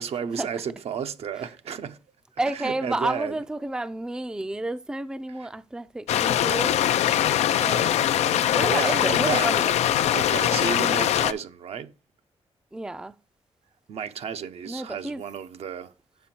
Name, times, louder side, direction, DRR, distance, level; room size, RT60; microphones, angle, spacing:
voice 1, 0.0-2.0 2.5-3.3 5.4-5.5 8.3-9.6 10.1-11.9 13.9-15.9, right 7 dB, 70° right, 0.8 m, -32 dB
voice 2, 2.4-6.8 7.5-8.0 8.5-9.8 12.7-13.2 14.7-15.2, right 2 dB, 5° right, 0.4 m, -30 dB
sound 1, 6.1-11.3, left 11 dB, 85° left, 0.4 m, -22 dB
6.9 x 5.7 x 4.4 m
cardioid pair, 85°, 11 cm